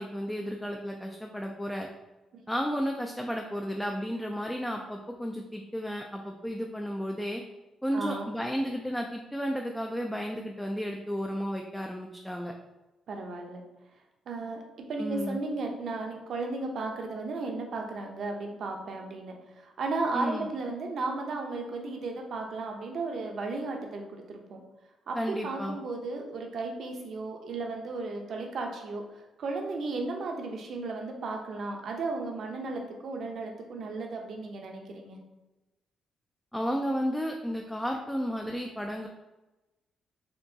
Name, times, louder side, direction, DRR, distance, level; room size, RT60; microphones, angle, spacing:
voice 1, 0.0-1.9 2.5-7.4 7.8-12.5 15.0-15.4 20.1-20.5 25.1-25.8 36.5-39.1, equal, 5° left, 1 dB, 0.3 m, -33 dB
voice 2, 7.9-8.3 13.1-13.6 14.3-14.6 14.9-24.6 25.1-25.2 25.4-29.0 29.4-35.2, right 3 dB, 60° right, 2 dB, 0.7 m, -35 dB
4.4 x 2.9 x 2.7 m, 1.0 s
cardioid pair, 115°, 0 cm